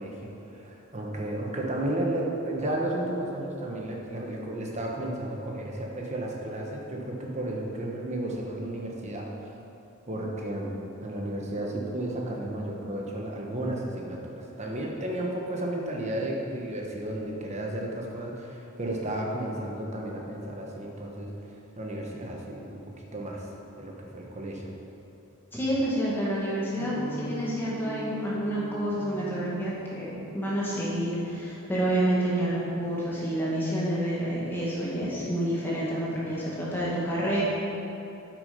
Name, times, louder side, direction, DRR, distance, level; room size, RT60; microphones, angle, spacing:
voice 1, 0.0-9.3 10.1-10.7 11.0-21.3 21.8-22.8 23.1-23.4 23.8-24.7, right 1 dB, 30° right, -1 dB, 1.1 m, -33 dB
voice 2, 25.5-37.4, right 1 dB, 10° left, -8 dB, 1.9 m, -28 dB
sound 1, 26.8-31.5, equal, 50° right, 1.3 m, -41 dB
8.4 x 6.3 x 5.2 m, 2.9 s
head